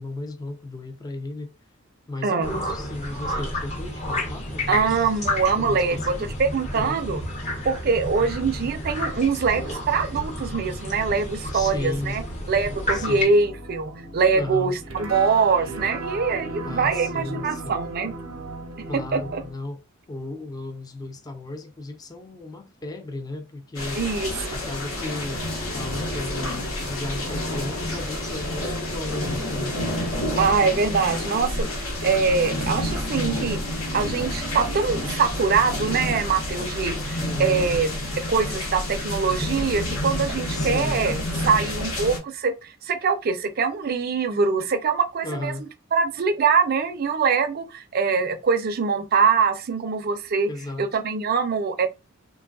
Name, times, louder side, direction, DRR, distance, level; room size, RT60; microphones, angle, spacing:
voice 1, 0.0-1.5 2.1-5.1 5.5-6.3 6.7-7.0 11.5-12.2 12.9-13.3 14.3-14.8 16.6-17.8 18.9-19.8 20.1-24.0 24.5-25.4 25.7-29.8 37.2-37.6 40.5-41.0 45.2-45.7 50.5-50.9, left 2 dB, 20° left, 0.4 m, -34 dB
sound 1, 2.4-13.2, left 1 dB, 35° left, 0.7 m, -31 dB
voice 2, 4.7-7.2 7.6-12.2 12.5-18.1 18.9-19.4 24.0-24.3 30.4-33.6 33.9-37.9 38.3-45.5 45.9-50.5 50.8-51.9, right 5 dB, 45° right, 0.4 m, -23 dB
sound 2, 12.7-19.5, right 3 dB, 85° right, 0.7 m, -36 dB
sound 3, 23.7-42.2, left 1 dB, 75° left, 1.0 m, -29 dB
3.1 x 2.3 x 2.2 m
head